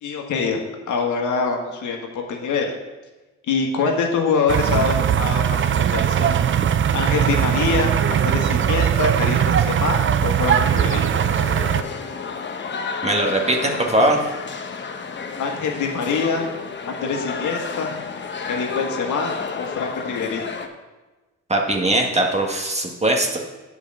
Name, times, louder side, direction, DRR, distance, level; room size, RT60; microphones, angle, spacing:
voice 1, 0.0-2.7 3.5-6.4 6.9-11.0 15.4-16.5 16.9-17.9 18.5-19.3 19.6-20.5, left 5 dB, 75° left, 1 dB, 1.6 m, -25 dB
sound 1, 4.5-11.8, right 8 dB, 40° right, 0.5 m, -20 dB
sound 2, 11.1-20.7, left 5 dB, 40° left, 1.0 m, -31 dB
voice 2, 13.0-14.2 21.5-23.4, right 1 dB, 20° right, 1 dB, 1.6 m, -20 dB
8.3 x 4.8 x 7.5 m, 1.2 s
cardioid pair, 90°, 30 cm